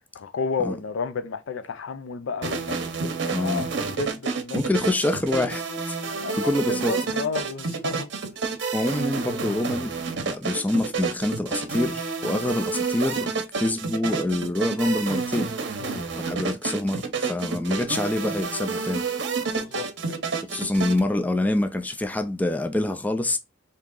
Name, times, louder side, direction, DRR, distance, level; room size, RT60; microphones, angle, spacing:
voice 1, 0.1-4.6 6.1-8.1 15.8-16.1 19.4-20.2, left 5 dB, 85° left, 0.5 m, -32 dB
sound 1, 2.4-21.0, right 4 dB, 60° right, 0.7 m, -29 dB
voice 2, 3.3-3.7 4.5-6.0 6.3-6.9 8.7-15.5 16.2-19.2 20.5-23.4, left 1 dB, 10° left, 0.3 m, -26 dB
3.6 x 2.8 x 3.6 m
head